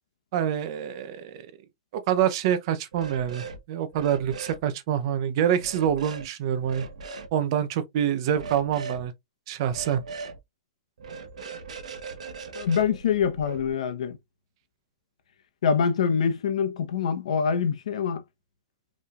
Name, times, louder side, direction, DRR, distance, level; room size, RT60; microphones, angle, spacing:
voice 1, 0.3-1.5 1.9-6.9 7.3-9.1 9.5-10.0, right 9 dB, 45° right, 0.7 m, -26 dB
sound 1, 2.9-3.6 3.9-4.6 5.6-6.2 6.6-7.3 8.3-9.0 9.7-10.4 11.0-13.7, right 4 dB, 85° right, 1.1 m, -39 dB
voice 2, 12.5-14.2 15.6-18.2, left 6 dB, 75° left, 1.0 m, -25 dB
5.2 x 3.3 x 2.5 m
hypercardioid pair, 155°, 4 cm